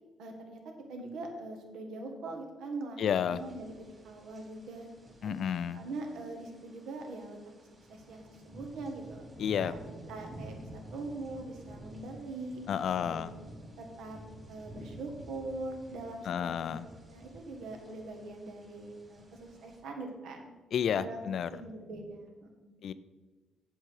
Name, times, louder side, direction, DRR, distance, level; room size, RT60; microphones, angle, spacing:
voice 1, 0.2-0.6 0.9-3.7 4.0-4.9 5.2-5.3 5.7-7.4 7.9-9.2 9.7-9.8 10.1-10.7 10.9-13.3 13.8-14.2 14.5-20.5 21.0-21.2 21.5-22.8, right 2 dB, 75° right, 3 dB, 1.6 m, -42 dB
voice 2, 3.0-3.4 5.2-5.8 9.4-9.8 12.7-13.4 16.2-16.9 20.7-21.5 22.8-22.9, left 8 dB, 50° left, 15 dB, 0.3 m, -31 dB
sound 1, 3.3-19.8, right 1 dB, 20° right, 2.3 m, -51 dB
7.8 x 7.4 x 4.7 m, 1.3 s
cardioid pair, 170°, 0 cm